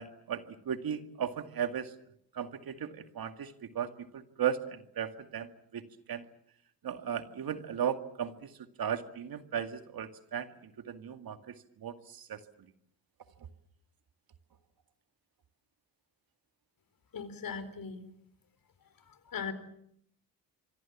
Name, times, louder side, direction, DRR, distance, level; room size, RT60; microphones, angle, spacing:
voice 1, 0.0-1.9 2.3-5.8 6.1-6.2 6.8-8.5 8.8-10.5 10.9-11.5 11.8-12.4, right 8 dB, 65° right, 8 dB, 2.2 m, -36 dB
voice 2, 17.1-18.0 19.3-19.5, left 6 dB, 60° left, 12 dB, 4.3 m, -38 dB
27.0 x 24.0 x 7.3 m, 0.70 s
supercardioid pair, 55°, 38 cm